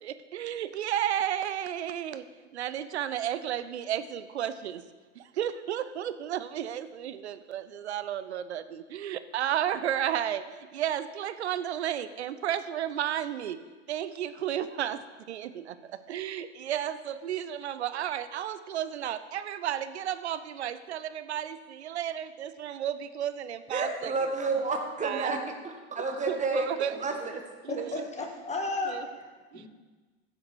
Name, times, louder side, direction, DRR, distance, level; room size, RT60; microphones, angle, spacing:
voice 1, 0.0-2.2 2.5-4.8 5.1-13.6 13.9-24.3 25.0-25.4 26.0-27.0 27.6-28.0 28.8-29.1 29.5-29.7, right 10 dB, 70° right, 13 dB, 0.8 m, -33 dB
voice 2, 23.7-25.4 25.6-26.7 27.0-27.4, right 3 dB, 20° right, 4 dB, 1.8 m, -30 dB
voice 3, 27.7-29.7, left 2 dB, 20° left, 3 dB, 2.1 m, -34 dB
15.0 x 7.2 x 4.8 m, 1.3 s
figure-of-eight pair, 85°, 34 cm